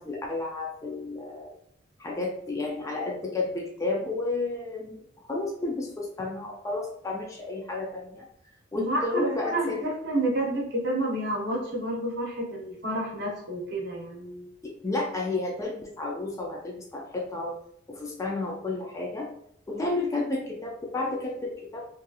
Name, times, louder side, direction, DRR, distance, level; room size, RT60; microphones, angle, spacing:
voice 1, 0.0-1.5 2.0-5.0 5.3-8.3 8.7-9.8 14.6-17.6 17.9-19.3 19.7-21.9, left 2 dB, 15° left, 0 dB, 0.3 m, -32 dB
voice 2, 8.7-14.5 19.7-19.9, right 1 dB, 55° right, 0 dB, 0.7 m, -30 dB
2.7 x 2.6 x 2.3 m, 0.69 s
head